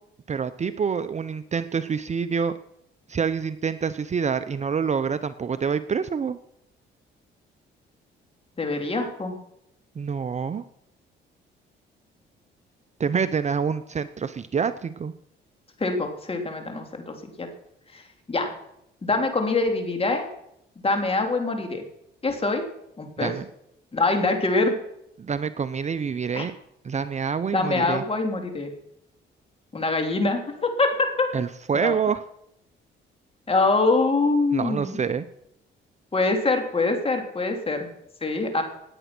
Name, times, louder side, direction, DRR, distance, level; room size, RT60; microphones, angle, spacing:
voice 1, 0.3-2.5 3.1-6.4 10.0-10.6 13.0-15.1 23.2-23.4 25.2-26.5 26.8-28.0 31.3-32.2 34.5-35.3, right 6 dB, 35° right, 12 dB, 0.7 m, -27 dB
voice 2, 8.6-9.3 15.8-17.5 17.9-18.0 18.3-18.5 19.0-20.2 20.8-21.8 22.2-22.6 23.0-23.3 23.9-24.7 26.3-26.4 27.5-28.7 29.7-31.3 31.7-31.9 33.5-35.0 36.1-37.9 38.2-38.6, left 3 dB, 30° left, 4 dB, 3.5 m, -24 dB
18.0 x 9.2 x 6.1 m, 0.78 s
cardioid pair, 90°, 20 cm